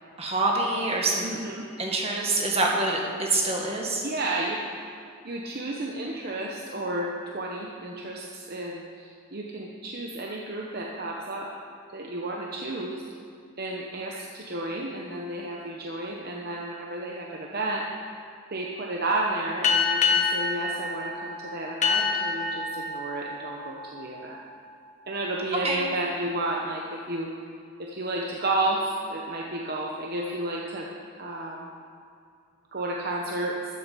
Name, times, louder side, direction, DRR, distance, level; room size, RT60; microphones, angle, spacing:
voice 1, 0.2-1.3 1.8-4.0 25.6-25.8, right 2 dB, 25° right, -1 dB, 1.8 m, -25 dB
voice 2, 1.2-1.7 4.0-4.6 5.2-7.1 7.3-11.5 11.9-13.0 13.6-17.8 18.5-24.4 25.1-27.3 27.8-30.9 31.2-31.7 32.7-33.6, right 2 dB, 45° right, -1 dB, 0.9 m, -32 dB
sound 1, 19.6-24.7, left 5 dB, 35° left, 1.1 m, -27 dB
13.0 x 7.8 x 6.8 m, 2.4 s
head